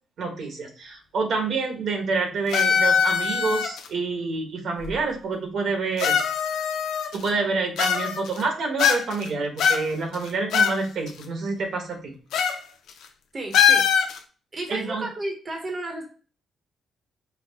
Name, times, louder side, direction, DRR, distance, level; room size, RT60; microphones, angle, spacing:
voice 1, 0.2-6.2 7.1-12.1 14.7-15.1, right 4 dB, 65° right, 3 dB, 1.2 m, -27 dB
sound 1, 2.5-3.9 4.8-4.9 6.0-7.3 7.8-8.4 8.8-9.3 9.6-10.8 11.1-11.2 12.3-12.6 12.9-13.1 13.5-14.2, left 7 dB, 85° left, 0.5 m, -22 dB
voice 2, 13.3-13.9 14.5-16.0, right 2 dB, 30° right, 2 dB, 0.9 m, -32 dB
4.8 x 2.2 x 3.5 m, 0.37 s
cardioid pair, 130°, 0 cm